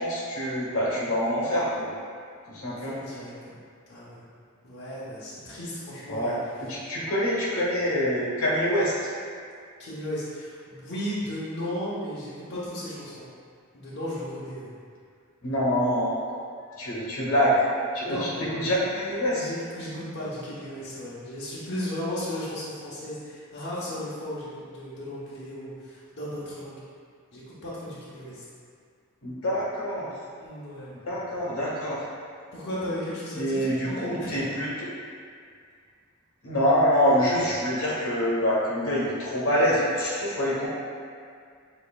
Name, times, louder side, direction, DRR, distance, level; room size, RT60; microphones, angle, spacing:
voice 1, 0.0-1.9 2.5-3.0 6.1-6.3 6.7-9.0 15.4-16.2 16.8-17.7 17.9-19.4 29.2-30.1 31.0-32.0 33.4-34.9 36.4-40.7, equal, 80° left, -6 dB, 1.2 m, -25 dB
voice 2, 2.6-3.5 3.9-4.2 4.6-6.4 9.8-13.3 13.7-14.7 18.1-18.3 19.3-26.8 27.3-28.4 30.4-31.0 32.5-34.4, equal, 55° left, -9 dB, 1.0 m, -35 dB
7.2 x 3.0 x 2.3 m, 2.2 s
head